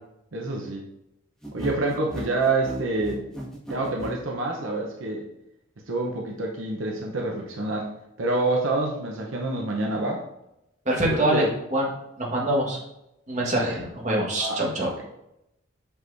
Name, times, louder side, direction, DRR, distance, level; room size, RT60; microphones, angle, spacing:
voice 1, 0.3-0.8 1.5-3.3 3.7-5.3 5.9-7.9 8.2-10.2 11.1-11.5 13.5-13.8 14.4-14.6, right 2 dB, 75° right, -1 dB, 0.9 m, -27 dB
sound 1, 1.4-4.2, equal, 5° left, 1.5 m, -36 dB
voice 2, 10.8-11.4 11.7-11.9 12.2-12.8 13.3-14.9, right 1 dB, 35° right, -3 dB, 1.6 m, -24 dB
6.1 x 5.7 x 2.7 m, 0.85 s
head